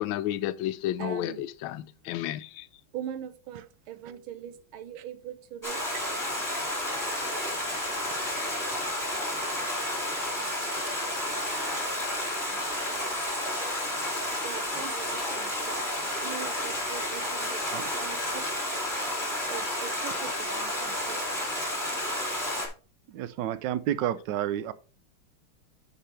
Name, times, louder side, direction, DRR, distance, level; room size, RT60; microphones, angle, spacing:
voice 1, 0.0-2.7, left 13 dB, 75° left, 1.3 m, -31 dB
voice 2, 1.0-1.5 2.9-5.8 10.4-10.5 14.4-17.6 17.9-18.4 19.5-21.4 24.1-24.3 24.5-24.7, right 9 dB, 85° right, 1.7 m, -41 dB
Stream, 5.6-22.7, left 1 dB, 10° left, 2.3 m, -31 dB
voice 3, 23.1-24.7, right 11 dB, 70° right, 1.2 m, -30 dB
9.8 x 5.6 x 3.3 m
omnidirectional pair, 2.2 m